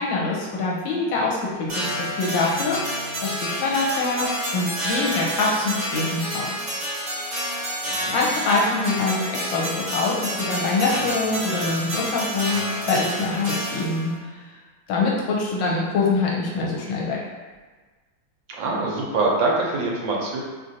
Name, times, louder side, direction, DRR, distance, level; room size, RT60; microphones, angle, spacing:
voice 1, 0.0-2.9 3.2-6.6 7.7-7.8 8.1-14.5 14.9-17.2, left 3 dB, 75° left, -3 dB, 1.3 m, -24 dB
sound 1, 1.7-14.2, equal, 50° right, 1.1 m, -29 dB
voice 2, 18.5-20.4, right 3 dB, 75° right, -2 dB, 1.3 m, -24 dB
3.2 x 2.5 x 2.6 m, 1.3 s
omnidirectional pair, 2.2 m